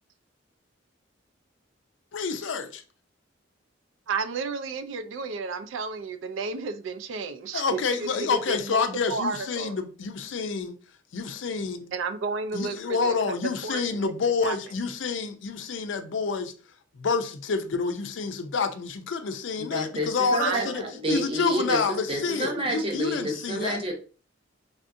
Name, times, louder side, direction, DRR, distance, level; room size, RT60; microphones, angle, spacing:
voice 1, 2.1-2.8 7.5-10.7 11.1-11.9 12.5-16.5 17.0-20.8 21.1-23.8, left 5 dB, 70° left, 0.4 m, -28 dB
voice 2, 4.1-9.8 11.9-13.4 13.6-14.1 14.4-14.6 20.4-21.2, right 5 dB, 80° right, 0.4 m, -32 dB
voice 3, 19.6-23.9, equal, 25° right, 0.7 m, -29 dB
3.4 x 2.5 x 2.5 m
head